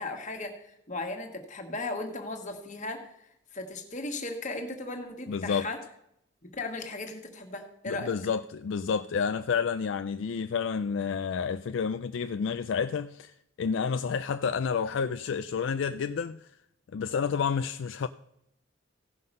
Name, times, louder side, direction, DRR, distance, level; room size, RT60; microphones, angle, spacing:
voice 1, 0.0-3.1 3.5-5.8 6.4-8.1, left 2 dB, 35° left, 1.5 m, -36 dB
voice 2, 5.3-5.7 7.9-13.3 13.6-16.4 16.9-18.1, left 6 dB, 60° left, 0.3 m, -30 dB
16.0 x 5.7 x 5.4 m
head